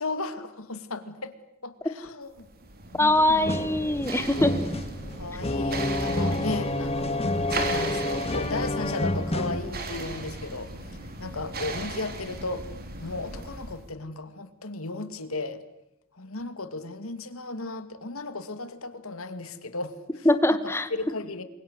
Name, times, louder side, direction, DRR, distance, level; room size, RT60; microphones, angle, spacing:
voice 1, 0.0-1.3 1.6-2.3 2.9-3.5 5.2-10.7 11.2-12.7 13.0-15.6 16.1-20.3 20.6-21.4, left 3 dB, 80° left, 11 dB, 2.4 m, -35 dB
sound 1, 2.4-13.9, right 2 dB, 45° right, 4.0 m, -37 dB
voice 2, 2.9-4.5 20.2-20.9, left 1 dB, 10° left, 11 dB, 1.8 m, -22 dB
sound 2, 3.5-9.6, left 1 dB, 30° left, 2.0 m, -29 dB
29.0 x 23.5 x 8.1 m, 0.82 s
head